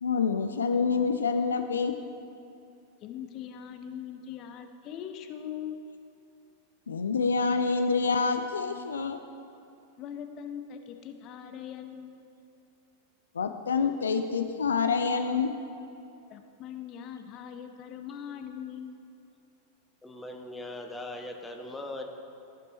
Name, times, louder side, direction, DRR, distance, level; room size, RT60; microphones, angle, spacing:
voice 1, 0.0-1.9 6.9-9.2 13.4-15.6, left 5 dB, 70° left, 7 dB, 0.4 m, -27 dB
voice 2, 3.0-5.8 10.0-12.2 16.3-19.0, left 9 dB, 35° left, 6 dB, 0.7 m, -41 dB
voice 3, 20.0-22.0, left 1 dB, 10° left, 3 dB, 0.9 m, -39 dB
15.5 x 5.3 x 4.2 m, 2.6 s
figure-of-eight pair, 90°, 0 cm